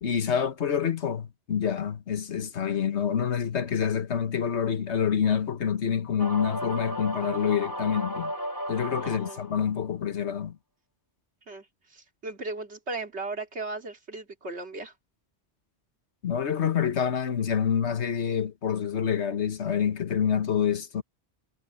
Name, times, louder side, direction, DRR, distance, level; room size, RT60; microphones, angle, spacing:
voice 1, 0.0-8.3 8.7-10.6 16.2-21.0, left 7 dB, 85° left, 1.5 m, -27 dB
sound 1, 6.2-9.7, equal, 20° left, 3.4 m, -34 dB
voice 2, 9.0-9.4 11.5-14.9, right 3 dB, 80° right, 2.9 m, -37 dB
omnidirectional pair, 1.1 m